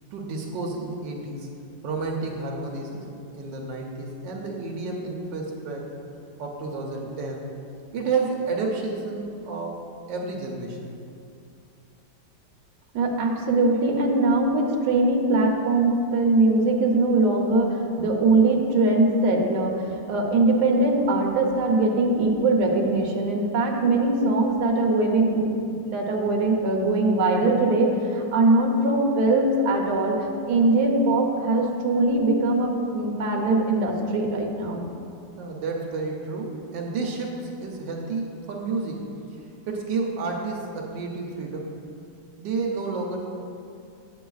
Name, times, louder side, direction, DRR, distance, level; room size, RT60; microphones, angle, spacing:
voice 1, 0.1-1.5 1.8-3.1 3.3-5.9 6.4-7.5 7.9-10.9 35.4-39.1 39.7-41.7 42.4-43.2, right 3 dB, 85° right, -1 dB, 1.4 m, -30 dB
voice 2, 12.9-30.2 30.5-34.8, right 2 dB, 70° right, 0 dB, 1.4 m, -21 dB
9.0 x 7.5 x 2.3 m, 2.5 s
omnidirectional pair, 1.9 m